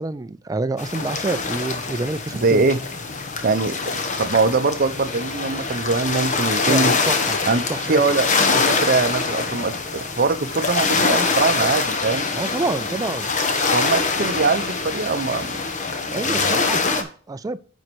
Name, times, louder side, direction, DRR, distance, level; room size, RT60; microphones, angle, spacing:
voice 1, 0.0-2.6 6.7-7.4 7.7-8.0 12.4-13.3 16.1-17.6, right 3 dB, 20° right, 0.3 m, -27 dB
sound 1, 0.8-17.0, left 4 dB, 40° left, 1.1 m, -24 dB
voice 2, 2.3-2.8 3.4-3.7 4.2-6.9 7.5-12.3 13.7-15.6 16.1-16.6, right 3 dB, 50° right, 0.7 m, -22 dB
9.2 x 4.4 x 4.6 m
head